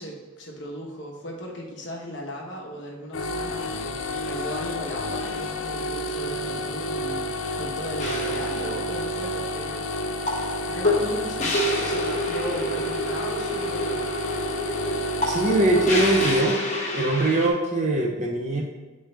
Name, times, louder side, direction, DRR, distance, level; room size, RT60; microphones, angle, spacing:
voice 1, 0.0-10.2 10.6-14.1, equal, 60° left, -1 dB, 1.2 m, -37 dB
sound 1, 3.1-16.4, left 1 dB, 85° left, 0.5 m, -30 dB
sound 2, 8.0-17.5, equal, 35° left, 1.0 m, -28 dB
voice 2, 15.3-16.6 16.9-18.6, right 1 dB, 35° right, -1 dB, 0.5 m, -22 dB
8.9 x 3.3 x 3.3 m, 1.3 s
head